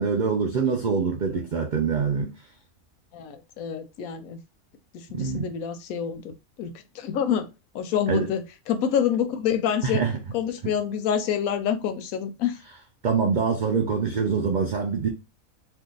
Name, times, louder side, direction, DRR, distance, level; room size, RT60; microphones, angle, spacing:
voice 1, 0.0-2.3 5.1-5.5 8.1-8.3 9.8-10.2 13.0-15.1, right 5 dB, 90° right, 0.4 m, -24 dB
voice 2, 3.1-4.4 4.9-7.5 7.7-10.0 10.3-12.6, left 8 dB, 85° left, 1.0 m, -27 dB
2.6 x 2.4 x 3.7 m
omnidirectional pair, 1.4 m